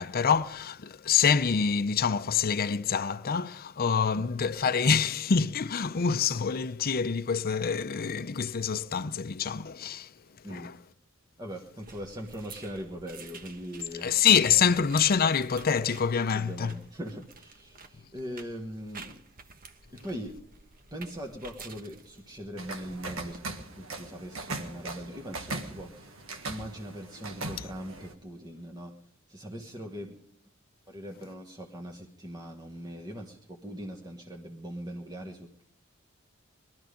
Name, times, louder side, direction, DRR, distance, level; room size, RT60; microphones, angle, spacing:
voice 1, 0.0-10.1 10.5-10.8 14.0-16.8, left 6 dB, 45° left, 0.6 m, -26 dB
voice 2, 11.4-14.2 16.3-19.3 19.9-20.4 20.9-26.1 26.4-28.9 29.3-30.2 30.9-35.6, equal, 20° right, 1.3 m, -41 dB
sound 1, 11.8-23.4, right 4 dB, 45° right, 1.2 m, -51 dB
sound 2, 22.6-28.1, right 2 dB, 70° right, 1.5 m, -39 dB
21.5 x 13.0 x 5.2 m
head